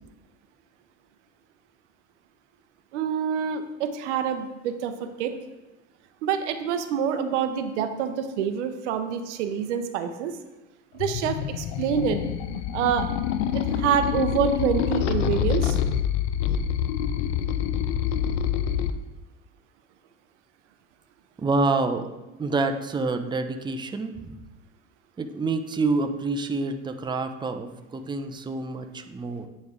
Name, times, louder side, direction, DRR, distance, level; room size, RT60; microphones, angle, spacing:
voice 1, 2.9-5.3 6.2-10.3 10.9-12.2 12.7-13.1 13.5-15.8, right 7 dB, 85° right, 8 dB, 0.6 m, -26 dB
sound 1, 11.0-18.9, left 9 dB, 75° left, 0.5 m, -26 dB
voice 2, 21.4-22.1 22.4-24.1 25.2-29.5, right 3 dB, 15° right, 6 dB, 0.5 m, -27 dB
9.2 x 3.3 x 3.6 m, 1.0 s
hypercardioid pair, 75°, 35 cm